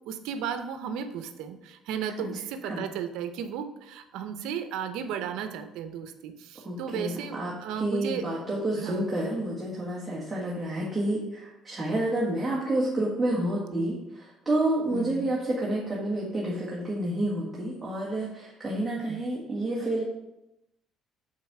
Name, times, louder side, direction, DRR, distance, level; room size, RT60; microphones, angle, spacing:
voice 1, 0.0-8.3 8.8-9.1 9.8-9.9 14.9-15.3 19.1-19.2, right 8 dB, 85° right, 8 dB, 0.7 m, -35 dB
voice 2, 6.6-20.0, right 1 dB, 15° right, -6 dB, 1.6 m, -29 dB
7.5 x 4.1 x 4.7 m, 0.91 s
cardioid pair, 130°, 0 cm